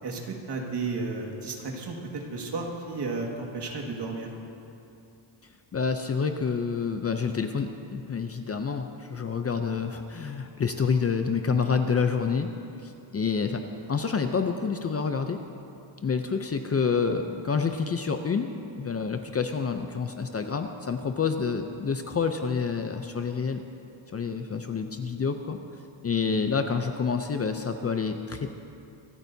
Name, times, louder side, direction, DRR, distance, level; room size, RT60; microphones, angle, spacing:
voice 1, 0.0-4.3, right 3 dB, 55° right, 0 dB, 1.9 m, -33 dB
voice 2, 5.7-12.5 12.8-13.6 13.9-15.4 16.0-18.5 18.8-23.6 24.1-25.6 26.0-28.5, left 5 dB, 30° left, 6 dB, 0.5 m, -28 dB
25.5 x 13.5 x 2.7 m, 2.7 s
wide cardioid pair, 175°, 48 cm